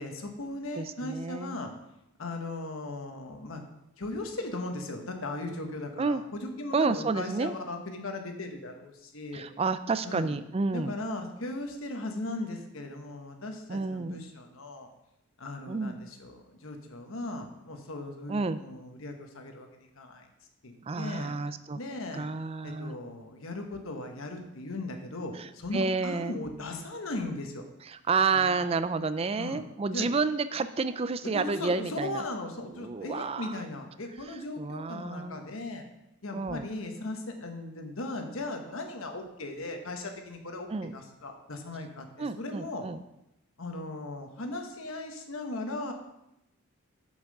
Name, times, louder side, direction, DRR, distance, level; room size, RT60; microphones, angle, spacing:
voice 1, 0.0-1.7 2.2-3.6 4.0-9.4 10.0-10.4 10.7-14.9 15.4-20.3 20.6-21.3 21.7-22.3 22.6-27.6 28.4-28.7 29.4-29.6 29.9-30.1 31.3-35.9 36.2-42.9 43.6-45.9, left 2 dB, 65° left, 4 dB, 1.2 m, -38 dB
voice 2, 0.8-1.6 6.0-6.2 6.7-7.5 9.3-11.0 13.7-14.2 15.7-16.0 18.3-18.6 20.9-21.8 22.1-23.0 25.4-26.4 27.9-32.3 32.8-33.6 34.6-35.4 36.3-36.7 40.7-40.9 42.2-43.0, right 4 dB, 25° right, 13 dB, 0.3 m, -30 dB
6.3 x 5.9 x 6.6 m, 0.86 s
head